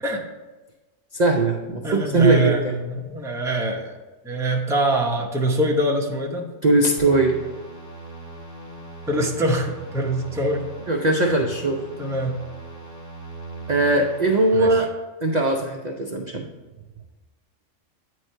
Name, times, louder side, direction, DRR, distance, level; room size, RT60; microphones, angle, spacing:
voice 1, 1.1-2.5 6.6-7.4 10.9-11.8 13.7-14.9 15.2-16.5, right 2 dB, 50° right, 1 dB, 0.5 m, -20 dB
voice 2, 1.8-4.0 4.2-6.5 9.1-10.6 11.2-11.5 12.0-12.4 14.5-14.8, right 1 dB, 5° right, 0 dB, 0.6 m, -24 dB
sound 1, 7.0-14.7, right 3 dB, 50° left, 2.2 m, -39 dB
8.8 x 3.2 x 5.4 m, 1.2 s
omnidirectional pair, 1.3 m